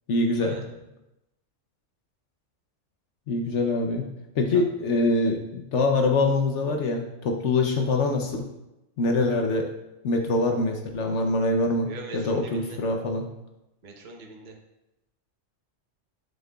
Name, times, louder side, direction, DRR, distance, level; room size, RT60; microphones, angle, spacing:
voice 1, 0.1-0.6 3.3-4.1 4.3-8.5 9.0-9.7 10.0-13.2, left 2 dB, 70° left, 3 dB, 1.0 m, -24 dB
voice 2, 11.8-12.8 13.8-14.6, right 3 dB, 40° right, 2 dB, 1.0 m, -41 dB
8.8 x 7.4 x 2.3 m, 0.92 s
omnidirectional pair, 1.3 m